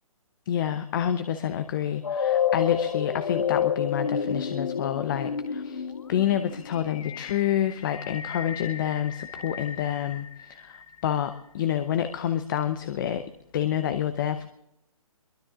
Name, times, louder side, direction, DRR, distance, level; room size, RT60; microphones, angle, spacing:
voice 1, 0.5-13.2 13.5-14.5, left 10 dB, 35° left, 10 dB, 0.9 m, -28 dB
sound 1, 2.0-11.0, left 7 dB, 65° left, 1.3 m, -30 dB
25.5 x 23.0 x 2.5 m, 0.85 s
figure-of-eight pair, 140°, 19 cm